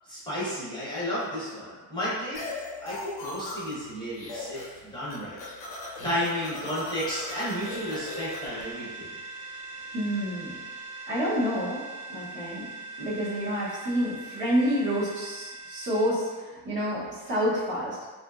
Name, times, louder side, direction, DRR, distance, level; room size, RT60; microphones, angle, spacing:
voice 1, 0.1-5.4 6.0-9.1, equal, 10° left, -10 dB, 0.8 m, -32 dB
sound 1, 2.3-3.8 4.1-4.8 5.0-8.6, left 2 dB, 60° left, 0.8 m, -38 dB
sound 2, 7.1-16.1, right 3 dB, 80° right, 0.6 m, -41 dB
voice 2, 9.9-10.5 11.1-11.8 12.1-12.7 13.0-18.1, equal, 30° right, -10 dB, 0.8 m, -28 dB
2.8 x 2.5 x 2.3 m, 1.3 s
cardioid pair, 135°, 41 cm